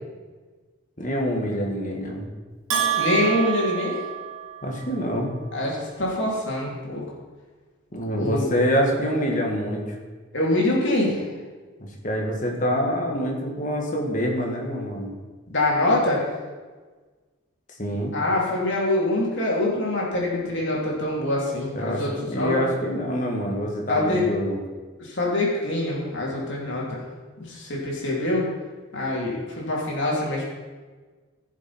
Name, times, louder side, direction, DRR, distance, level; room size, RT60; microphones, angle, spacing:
voice 1, 1.0-2.3 4.6-5.3 7.9-10.0 11.8-15.2 17.8-18.2 21.8-22.0 22.3-24.6, equal, 35° left, 1 dB, 1.9 m, -26 dB
Bell, 2.7-4.8, right 9 dB, 80° right, 2.2 m, -27 dB
voice 2, 3.0-4.0 5.5-7.0 8.1-8.5 10.3-11.3 15.5-16.2 18.1-22.6 23.9-24.2 25.0-27.0 27.4-28.5 28.9-30.5, left 1 dB, 55° left, -4 dB, 3.3 m, -24 dB
16.0 x 7.1 x 4.5 m, 1.4 s
head